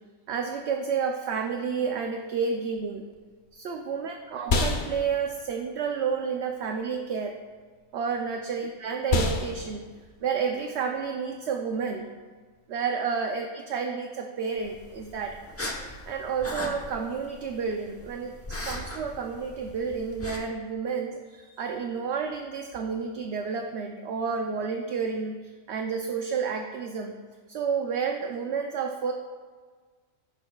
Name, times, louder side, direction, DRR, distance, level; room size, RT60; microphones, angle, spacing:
voice 1, 0.3-3.1 3.5-7.4 7.9-9.8 10.2-12.1 12.7-15.4 16.1-27.1 27.5-29.1, right 6 dB, 60° right, 3 dB, 0.8 m, -30 dB
sound 1, 3.1-12.7, left 3 dB, 45° left, 0.7 m, -33 dB
sound 2, 14.6-20.4, left 1 dB, 15° left, 0.7 m, -39 dB
16.5 x 6.7 x 2.3 m, 1.5 s
omnidirectional pair, 1.4 m